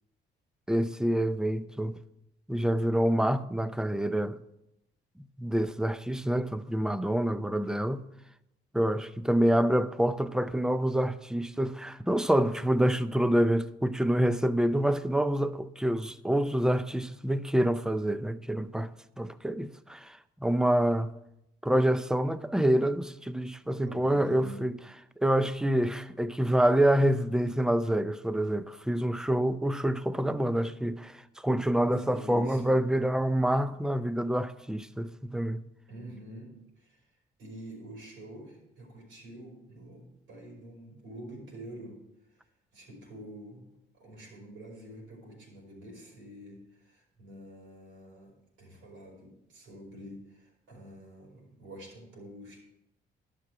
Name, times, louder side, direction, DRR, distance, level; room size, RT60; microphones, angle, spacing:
voice 1, 0.7-2.0 2.5-4.4 5.2-8.0 8.7-18.9 19.2-21.1 21.6-24.7 25.2-35.6, right 1 dB, 5° right, 0.5 m, -27 dB
voice 2, 23.8-24.6 31.8-32.7 35.9-37.1 37.4-42.0 42.3-52.6, equal, 80° right, 5.0 m, -47 dB
11.5 x 6.2 x 6.1 m
cardioid pair, 90°, 20 cm